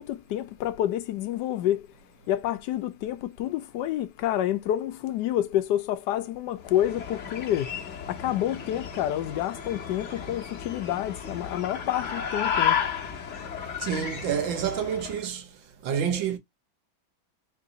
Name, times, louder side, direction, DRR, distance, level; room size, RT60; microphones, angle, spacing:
voice 1, 0.0-1.9 2.3-7.8 8.1-12.8, left 12 dB, 70° left, 1.1 m, -28 dB
sound 1, 6.6-15.2, left 7 dB, 50° left, 1.0 m, -33 dB
voice 2, 13.8-15.5 15.8-16.4, right 8 dB, 75° right, 1.7 m, -28 dB
3.8 x 2.6 x 3.7 m
omnidirectional pair, 2.2 m